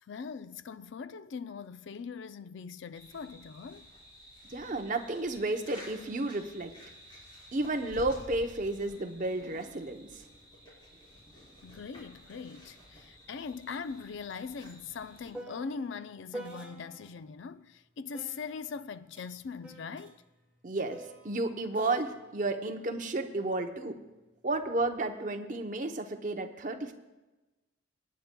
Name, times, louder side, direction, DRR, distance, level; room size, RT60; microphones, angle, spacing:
voice 1, 0.0-3.9 11.6-20.2, left 5 dB, 60° left, 0.4 m, -41 dB
sound 1, 2.9-15.3, equal, 25° left, 4.2 m, -52 dB
voice 2, 4.5-6.7 7.5-10.1 20.6-24.0 24.4-26.9, right 2 dB, 40° right, 0.7 m, -32 dB
sound 2, 12.0-12.1 12.4-17.2 18.1-23.7 24.5-24.9, right 1 dB, 5° right, 1.1 m, -49 dB
24.5 x 9.2 x 2.2 m
head